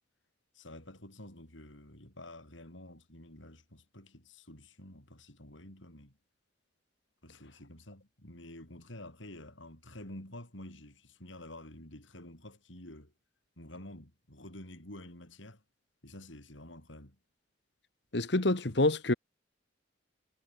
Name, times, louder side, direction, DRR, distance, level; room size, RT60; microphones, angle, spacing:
voice 1, 0.5-6.2 7.2-13.1 13.6-15.6 16.0-17.2, left 1 dB, 80° left, 7.6 m, -49 dB
voice 2, 18.1-19.1, left 2 dB, 60° left, 1.7 m, -27 dB
head